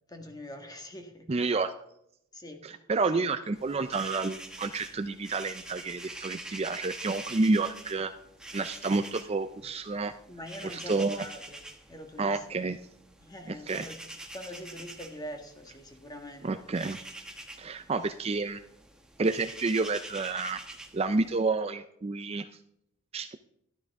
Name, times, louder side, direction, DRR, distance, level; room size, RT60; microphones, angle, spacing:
voice 1, 0.1-1.2 2.3-2.6 3.1-3.2 10.3-12.6 13.2-14.0 14.3-16.5, left 1 dB, 20° left, 4 dB, 1.8 m, -44 dB
voice 2, 1.3-1.7 2.6-8.1 8.5-10.1 10.6-11.2 12.2-12.8 13.5-13.9 16.4-17.0 17.6-18.6 19.2-20.6 20.9-22.5 23.1-23.4, right 3 dB, 30° right, 9 dB, 0.4 m, -29 dB
sound 1, 3.5-21.4, right 1 dB, 5° right, 1.2 m, -46 dB
13.0 x 12.0 x 3.6 m, 0.76 s
head